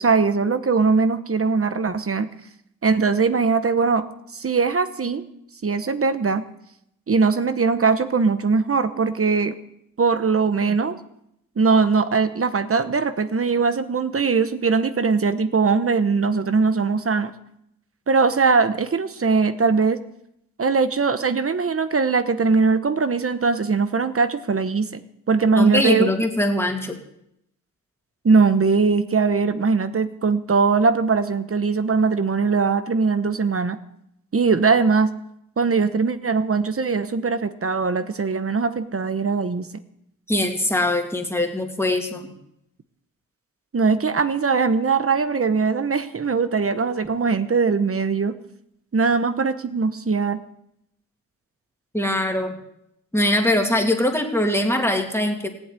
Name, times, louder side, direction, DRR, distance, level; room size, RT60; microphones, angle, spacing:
voice 1, 0.0-2.3 2.8-4.0 4.3-5.2 5.6-6.4 7.1-9.5 10.0-11.0 11.6-17.3 18.1-20.0 20.6-25.0 25.3-26.1 28.2-33.8 34.3-35.1 35.6-39.7 43.7-48.4 48.9-50.4, right 4 dB, 40° right, 11 dB, 1.1 m, -20 dB
voice 2, 25.5-27.0 40.3-42.3 51.9-52.5 53.1-55.5, left 1 dB, 5° left, 2 dB, 2.4 m, -22 dB
18.0 x 8.0 x 9.8 m, 0.77 s
wide cardioid pair, 140°, 33 cm